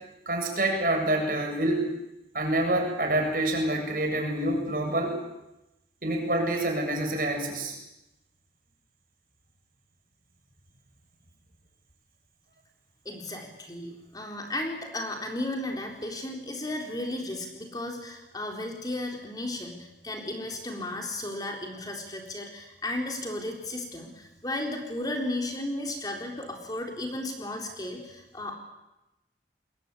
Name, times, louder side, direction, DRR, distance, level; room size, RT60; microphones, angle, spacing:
voice 1, 0.3-1.8 2.3-5.2 6.0-7.8, right 1 dB, 50° right, 3 dB, 7.7 m, -27 dB
voice 2, 13.0-28.5, left 1 dB, 20° left, 2 dB, 4.0 m, -34 dB
29.5 x 22.0 x 8.5 m, 0.94 s
head